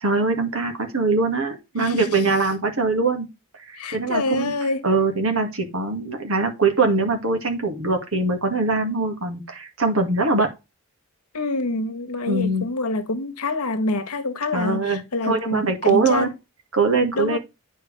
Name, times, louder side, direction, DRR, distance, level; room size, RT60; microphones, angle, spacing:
voice 1, 0.0-3.3 3.7-4.5 4.8-10.5 12.3-12.7 14.5-16.3 16.7-17.4, right 3 dB, 65° right, 2.0 m, -22 dB
voice 2, 1.8-2.2 3.7-4.8 11.3-16.3 17.1-17.4, left 2 dB, 85° left, 1.1 m, -26 dB
9.6 x 4.6 x 3.3 m
head